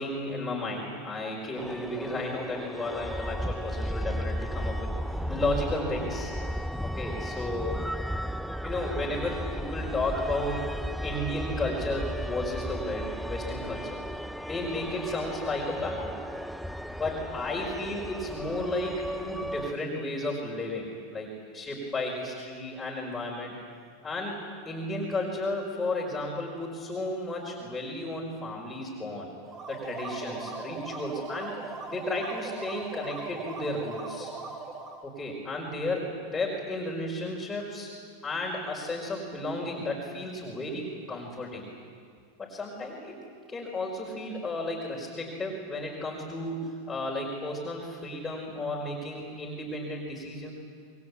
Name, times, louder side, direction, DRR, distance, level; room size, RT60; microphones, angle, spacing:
voice 1, 0.0-6.3 6.8-7.8 8.6-14.0 14.5-16.1 17.0-23.5 24.0-24.4 24.6-29.3 29.7-31.5 31.9-34.3 35.0-37.9 38.2-41.6 42.4-43.2 43.5-50.5, left 2 dB, 15° left, -4 dB, 5.1 m, -33 dB
sound 1, 1.6-19.7, equal, ahead, 0.6 m, -35 dB
sound 2, 29.4-35.1, right 4 dB, 30° right, 4.0 m, -39 dB
27.5 x 22.0 x 8.5 m, 2.3 s
supercardioid pair, 120°, 0 cm